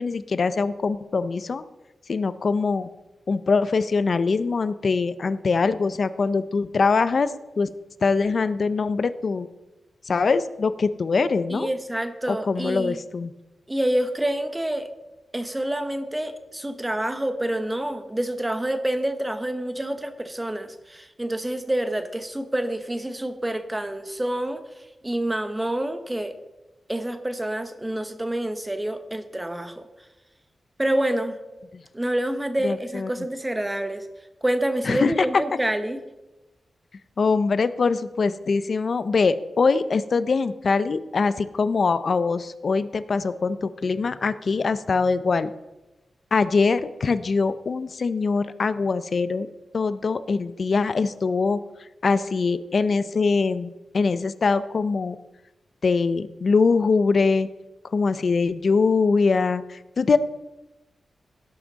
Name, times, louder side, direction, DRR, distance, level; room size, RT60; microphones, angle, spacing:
voice 1, 0.0-1.6 2.1-2.9 3.3-7.3 7.6-7.7 8.0-9.5 10.1-11.7 12.3-13.3 32.6-33.1 34.9-35.1 37.2-45.5 46.3-49.5 49.7-51.6 52.0-55.2 55.8-57.5 57.9-60.2, left 4 dB, 55° left, 14 dB, 0.5 m, -23 dB
voice 2, 11.5-13.0 13.7-14.9 15.3-24.6 25.0-26.4 26.9-29.8 30.8-31.4 31.9-34.1 34.4-36.0, right 1 dB, 15° right, 9 dB, 1.0 m, -27 dB
17.0 x 6.1 x 4.0 m, 1.1 s
cardioid pair, 85°, 0 cm